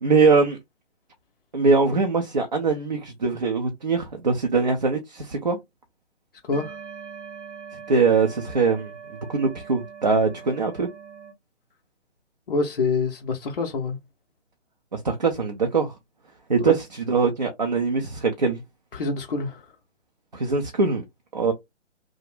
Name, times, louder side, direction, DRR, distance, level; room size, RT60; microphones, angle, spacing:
voice 1, 0.0-0.6 1.5-5.6 7.9-8.9 9.3-10.9 14.9-15.9 16.5-18.6 20.3-21.0 21.3-21.5, right 4 dB, 40° right, 0.4 m, -22 dB
voice 2, 6.4-6.8 12.5-14.0 16.5-16.7 18.9-19.6, left 4 dB, 45° left, 0.5 m, -26 dB
sound 1, 6.5-11.3, right 6 dB, 70° right, 0.7 m, -42 dB
2.4 x 2.0 x 3.2 m
figure-of-eight pair, 140°, 37 cm